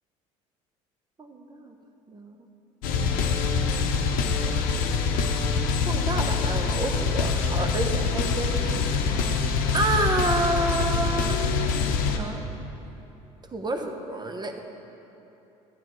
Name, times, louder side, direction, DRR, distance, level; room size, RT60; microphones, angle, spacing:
voice 1, 1.2-1.7 2.1-2.4 4.2-4.7 5.9-8.8 9.7-11.4 12.2-12.4 13.4-14.6, right 2 dB, 30° right, 5 dB, 0.9 m, -29 dB
sound 1, 2.8-12.2, left 5 dB, 70° left, 0.7 m, -25 dB
10.5 x 9.2 x 3.1 m, 3.0 s
hypercardioid pair, 70°, 15 cm